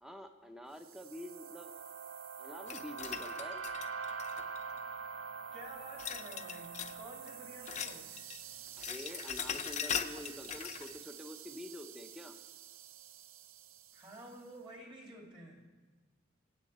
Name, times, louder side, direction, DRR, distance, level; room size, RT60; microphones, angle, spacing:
voice 1, 0.0-1.7 2.4-3.6 8.8-12.4, left 1 dB, 5° right, 6 dB, 0.8 m, -47 dB
sound 1, 0.8-14.2, right 6 dB, 85° right, 0.5 m, -46 dB
sound 2, 2.7-4.8 6.0-7.0 7.3-8.4 8.7-10.9, left 8 dB, 35° left, 0.5 m, -40 dB
voice 2, 5.5-8.1 13.9-15.7, right 1 dB, 25° right, 0 dB, 2.3 m, -51 dB
24.5 x 8.4 x 4.2 m, 1.3 s
head